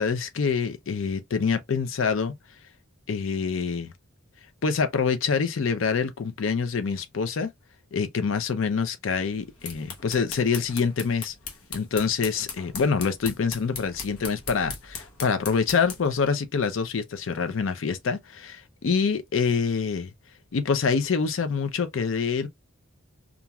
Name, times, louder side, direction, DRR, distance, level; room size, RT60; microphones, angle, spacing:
voice 1, 0.0-2.3 3.1-3.9 4.6-7.5 7.9-11.3 11.7-20.1 20.5-22.5, left 5 dB, 65° left, 0.5 m, -26 dB
sound 1, 9.4-16.2, left 5 dB, 90° left, 1.0 m, -39 dB
2.9 x 2.5 x 2.2 m
head